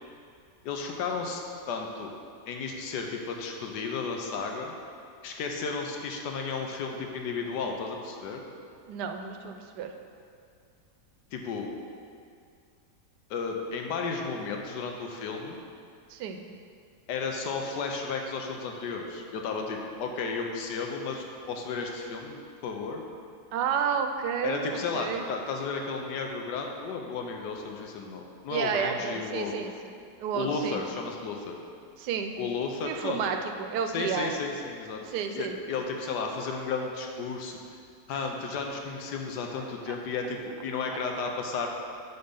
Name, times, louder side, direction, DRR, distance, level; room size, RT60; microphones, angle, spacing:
voice 1, 0.6-1.4 1.7-2.1 2.5-4.7 5.2-8.4 11.3-11.7 13.3-15.6 17.1-22.4 22.6-23.0 24.4-29.5 30.3-31.6 32.4-33.3 33.9-35.0 35.3-37.6 38.1-41.7, left 4 dB, 85° left, 2 dB, 1.3 m, -33 dB
voice 2, 8.9-9.9 16.1-16.4 23.5-25.2 28.5-29.7 30.2-30.8 32.0-32.4 32.8-34.4 35.1-35.6 38.1-38.2, right 7 dB, 85° right, 5 dB, 1.2 m, -31 dB
8.0 x 3.4 x 5.4 m, 2.3 s
omnidirectional pair, 1.7 m